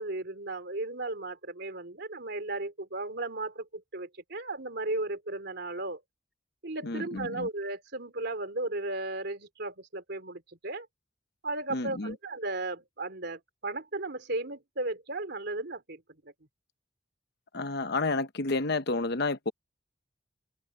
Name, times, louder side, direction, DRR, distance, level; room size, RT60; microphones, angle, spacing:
voice 1, 0.0-6.0 6.6-10.9 11.4-16.0, right 2 dB, 60° right, 3.5 m, -35 dB
voice 2, 6.8-7.5 11.7-12.1 17.5-19.5, left 3 dB, 60° left, 1.0 m, -30 dB
head